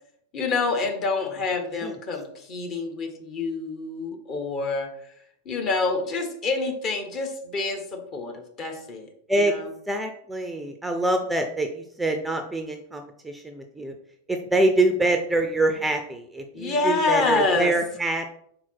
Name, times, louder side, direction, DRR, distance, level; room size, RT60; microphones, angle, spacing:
voice 1, 0.3-4.9 5.4-9.1 9.4-9.6 16.5-17.7, left 3 dB, 35° left, 3 dB, 1.4 m, -27 dB
voice 2, 9.9-14.0 14.3-18.3, right 2 dB, 5° right, 5 dB, 0.6 m, -25 dB
4.7 x 4.0 x 5.8 m, 0.69 s
figure-of-eight pair, 90°, 0 cm